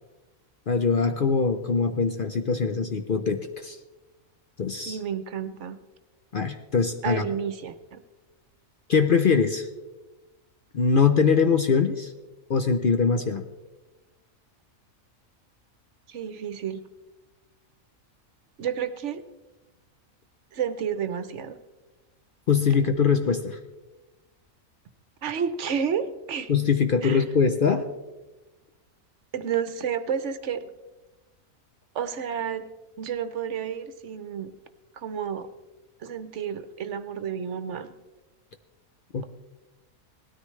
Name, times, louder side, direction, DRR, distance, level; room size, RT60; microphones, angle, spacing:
voice 1, 0.7-3.8 4.6-5.0 6.3-7.2 8.9-9.7 10.7-12.1 12.5-13.5 22.5-23.6 26.5-27.9 39.1-39.2, left 5 dB, 50° left, 6 dB, 0.7 m, -22 dB
voice 2, 4.9-5.8 7.0-8.0 16.1-16.8 18.6-19.2 20.5-21.6 25.2-26.5 27.0-27.2 29.3-30.7 31.9-32.7 33.0-34.5 34.9-35.5 36.0-37.9, right 7 dB, 65° right, 10 dB, 1.0 m, -30 dB
19.0 x 13.0 x 3.2 m, 1.1 s
omnidirectional pair, 1.4 m